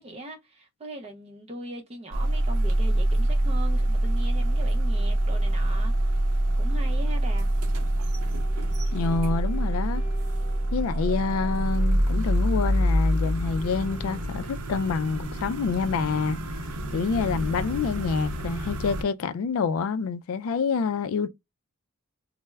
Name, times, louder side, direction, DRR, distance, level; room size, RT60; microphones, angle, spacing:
voice 1, 0.0-7.5, right 1 dB, 25° right, 0.5 m, -40 dB
sound 1, 2.1-19.0, right 1 dB, 75° right, 0.6 m, -25 dB
sound 2, 8.5-14.2, left 4 dB, 40° left, 1.2 m, -50 dB
voice 2, 8.9-10.0 10.7-16.4 16.9-21.3, left 5 dB, 70° left, 0.3 m, -27 dB
4.2 x 2.0 x 2.2 m
head